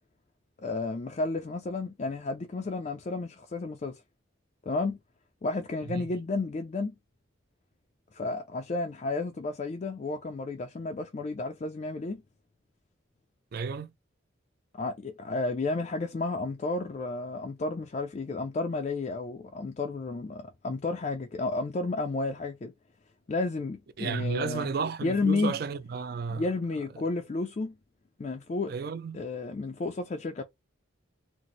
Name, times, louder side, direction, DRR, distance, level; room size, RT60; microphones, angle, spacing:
voice 1, 0.6-4.0 4.7-5.0 5.4-6.9 8.1-12.2 14.7-22.7 23.3-24.7 25.0-25.6 26.3-27.8 28.2-28.7 29.1-30.4, left 3 dB, 35° left, 0.3 m, -32 dB
voice 2, 13.5-13.9 24.0-26.4 28.7-29.2, right 5 dB, 50° right, 0.3 m, -32 dB
4.0 x 2.0 x 3.0 m
head